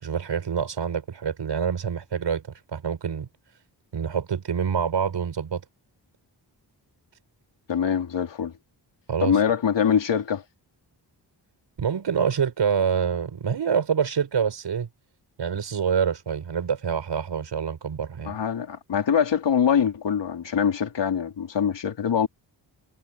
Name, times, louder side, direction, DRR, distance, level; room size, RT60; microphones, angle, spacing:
voice 1, 0.0-3.3 3.9-5.6 9.1-9.4 11.8-14.9 15.4-18.3, right 7 dB, 80° right, 6.0 m, -26 dB
voice 2, 7.7-8.5 9.2-10.4 18.3-22.3, left 8 dB, 85° left, 3.7 m, -23 dB
wide cardioid pair, 125°, 42 cm